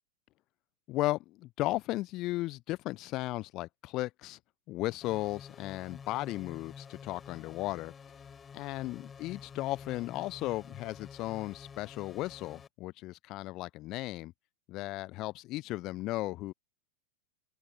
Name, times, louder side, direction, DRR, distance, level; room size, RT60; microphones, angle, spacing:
voice 1, 0.9-4.4 4.7-7.9 8.5-14.3 14.7-16.5, left 18 dB, 40° left, 0.8 m, -35 dB
sound 1, 5.0-12.7, left 6 dB, 20° left, 5.5 m, -49 dB
figure-of-eight pair, 90°, 0 cm